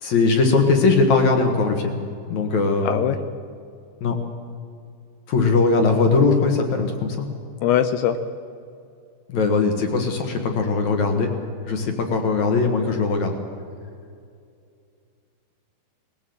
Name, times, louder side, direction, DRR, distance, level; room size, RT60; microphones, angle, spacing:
voice 1, 0.0-2.0 2.3-3.0 4.0-4.2 5.3-7.3 9.3-11.3 11.6-13.4, left 4 dB, 55° left, 4 dB, 2.2 m, -20 dB
voice 2, 2.8-3.2 7.6-8.2, left 10 dB, 80° left, 10 dB, 2.5 m, -20 dB
19.5 x 17.5 x 7.9 m, 2.4 s
omnidirectional pair, 5.2 m